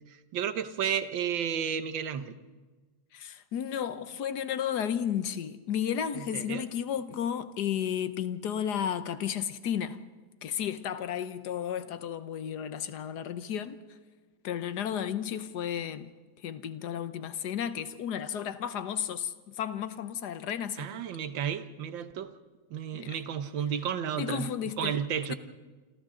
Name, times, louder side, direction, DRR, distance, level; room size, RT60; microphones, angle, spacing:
voice 1, 0.3-2.4 6.1-6.6 20.8-22.3 22.7-24.5 24.8-25.3, right 8 dB, 90° right, 1.8 m, -32 dB
voice 2, 3.1-10.0 10.4-13.8 14.4-16.1 16.4-21.0 22.9-23.1 24.2-25.0 25.3-25.4, left 9 dB, 65° left, 1.5 m, -33 dB
27.5 x 27.0 x 3.8 m
omnidirectional pair, 2.0 m